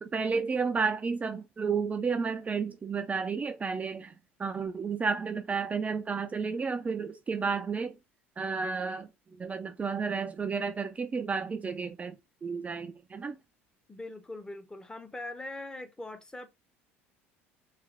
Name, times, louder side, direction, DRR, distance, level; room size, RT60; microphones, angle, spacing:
voice 1, 0.0-4.1 4.4-8.0 8.4-13.4, right 5 dB, 20° right, 0.5 m, -32 dB
voice 2, 13.9-16.5, left 2 dB, 10° left, 0.8 m, -41 dB
3.3 x 3.1 x 3.5 m
figure-of-eight pair, 65°, 7 cm